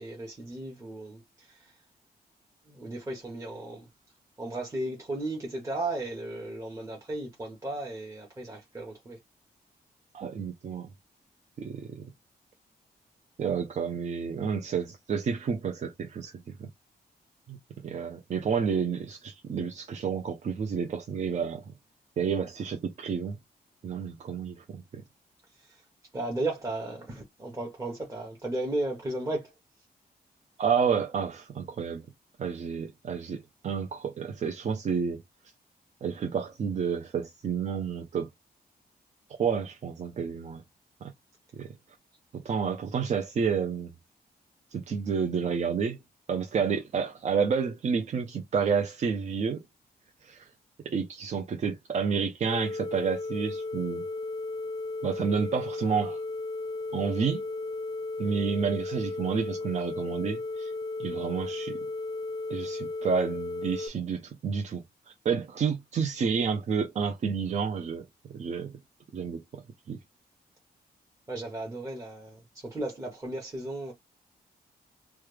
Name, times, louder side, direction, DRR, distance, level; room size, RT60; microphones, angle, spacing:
voice 1, 0.0-1.8 2.7-3.9 4.4-9.2 25.5-25.9 26.1-29.5 42.5-42.6 71.3-73.9, right 2 dB, 20° right, 0.9 m, -35 dB
voice 2, 10.1-10.9 11.6-12.1 13.4-16.7 17.5-17.6 17.8-21.7 22.2-23.4 23.8-25.0 30.6-32.0 32.4-35.2 36.0-38.3 39.3-40.6 41.0-41.1 41.5-41.8 42.3-43.9 44.7-46.0 46.3-49.6 50.2-50.5 50.8-54.0 55.0-56.2 56.9-57.4 58.2-60.7 61.0-61.8 62.5-64.8 65.2-68.1 68.3-68.8 69.1-70.0, right 6 dB, 45° right, 0.5 m, -30 dB
sound 1, 52.5-63.9, left 3 dB, 20° left, 0.5 m, -35 dB
3.2 x 2.3 x 3.2 m
wide cardioid pair, 175°, 16 cm